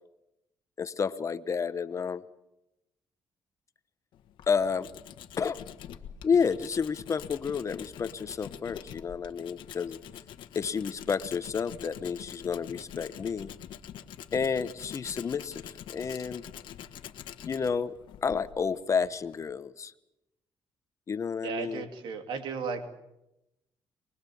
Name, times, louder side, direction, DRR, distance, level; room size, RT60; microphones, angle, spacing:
voice 1, 0.8-2.2 4.5-4.9 5.4-5.6 6.2-10.0 10.5-13.5 14.3-15.6 15.9-16.5 17.4-17.9 18.2-19.9 21.1-21.9, left 6 dB, 40° left, 13 dB, 1.1 m, -30 dB
Tools, 4.1-19.5, left 10 dB, 85° left, 1.4 m, -45 dB
voice 2, 21.4-22.9, right 5 dB, 80° right, 6 dB, 2.7 m, -35 dB
24.5 x 21.5 x 7.1 m, 0.89 s
cardioid pair, 110°, 8 cm